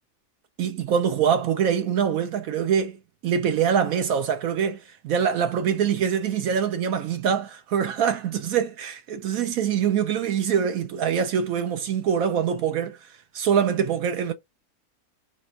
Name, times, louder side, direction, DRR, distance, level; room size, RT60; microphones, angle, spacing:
voice 1, 0.6-4.7 5.1-14.3, right 8 dB, 70° right, 1.0 m, -24 dB
4.1 x 2.5 x 4.4 m
omnidirectional pair, 1.7 m